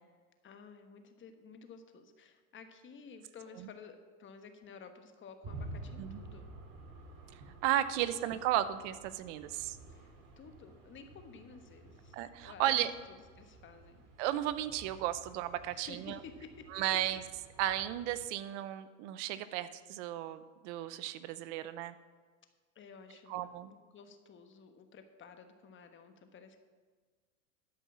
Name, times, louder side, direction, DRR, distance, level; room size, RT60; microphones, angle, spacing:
voice 1, 0.4-6.5 7.9-8.1 9.9-12.9 13.4-14.0 15.7-16.7 22.7-23.4 23.7-26.6, left 5 dB, 30° left, 7 dB, 1.2 m, -53 dB
sound 1, 5.4-18.2, right 2 dB, 40° right, 2.5 m, -51 dB
voice 2, 7.6-9.8 12.1-12.9 14.2-16.2 16.7-17.2 17.6-21.9 23.3-23.7, right 12 dB, 65° right, 14 dB, 0.7 m, -34 dB
12.0 x 5.5 x 7.3 m, 1.5 s
supercardioid pair, 115°, 39 cm